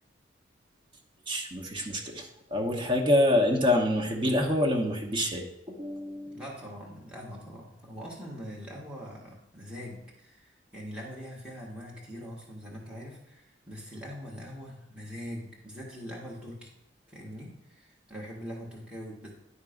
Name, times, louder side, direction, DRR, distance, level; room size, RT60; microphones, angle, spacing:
voice 1, 1.3-6.4, left 1 dB, 30° right, -1 dB, 1.2 m, -26 dB
voice 2, 6.3-16.7 17.1-19.3, equal, 5° right, -5 dB, 1.6 m, -42 dB
11.0 x 3.7 x 5.1 m, 0.82 s
head